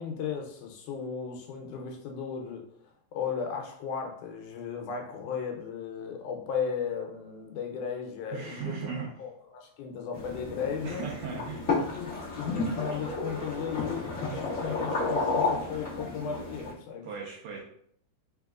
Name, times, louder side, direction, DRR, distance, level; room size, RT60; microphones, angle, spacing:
voice 1, 0.0-2.7 3.1-11.1 11.9-17.1, left 6 dB, 80° left, 2 dB, 2.1 m, -36 dB
voice 2, 8.3-9.1 10.8-11.7 17.0-17.6, right 6 dB, 75° right, -2 dB, 1.6 m, -37 dB
sound 1, 10.1-16.7, left 3 dB, 45° left, 1.0 m, -32 dB
4.4 x 3.6 x 2.3 m, 0.66 s
omnidirectional pair, 3.5 m